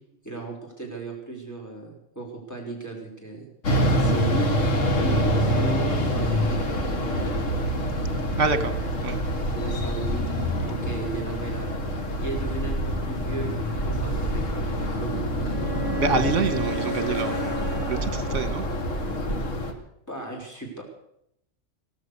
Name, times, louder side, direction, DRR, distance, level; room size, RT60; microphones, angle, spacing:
voice 1, 0.2-3.4 3.8-7.4 8.1-8.9 9.5-11.8 12.2-15.2 19.6-19.7 20.1-20.8, right 3 dB, 10° left, 0 dB, 4.2 m, -36 dB
sound 1, 3.6-19.7, equal, 65° left, 2.0 m, -26 dB
voice 2, 8.4-8.7 9.0-9.2 16.0-17.5 17.9-18.6, right 4 dB, 65° right, 11 dB, 1.5 m, -26 dB
Bowed string instrument, 15.5-19.0, right 1 dB, 15° right, 2.8 m, -34 dB
16.5 x 13.0 x 6.6 m, 0.76 s
omnidirectional pair, 1.4 m